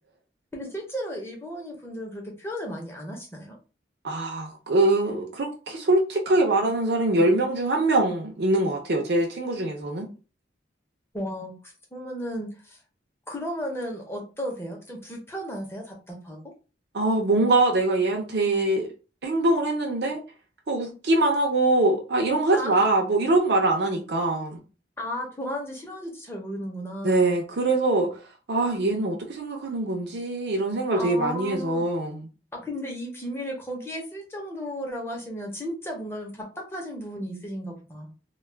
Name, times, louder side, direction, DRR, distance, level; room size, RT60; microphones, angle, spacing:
voice 1, 0.5-3.6 11.1-11.5 11.9-12.8 13.3-16.4 22.5-22.8 25.0-27.4 31.0-31.8 32.5-38.1, equal, 15° left, 0.7 m, -34 dB
voice 2, 4.0-10.1 16.9-18.9 19.2-20.2 20.7-24.6 27.0-28.1 28.5-32.3, right 2 dB, 60° right, 0.6 m, -23 dB
2.3 x 2.2 x 3.3 m
head